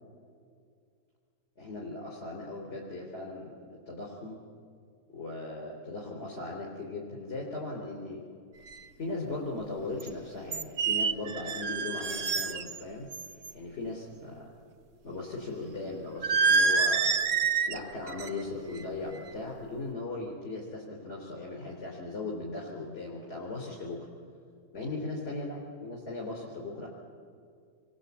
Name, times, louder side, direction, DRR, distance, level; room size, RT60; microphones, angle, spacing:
voice 1, 1.6-4.4 5.1-8.2 9.0-13.1 13.5-14.5 15.0-17.2 17.7-24.1 24.7-26.9, left 2 dB, 40° left, -3 dB, 4.7 m, -38 dB
sound 1, 8.7-8.8 10.0-10.1 10.5-12.8 13.1-13.5 16.2-17.8 18.1-18.4 18.8-19.1, right 5 dB, 50° right, 1.3 m, -27 dB
29.0 x 23.5 x 8.6 m, 2.3 s
omnidirectional pair, 1.8 m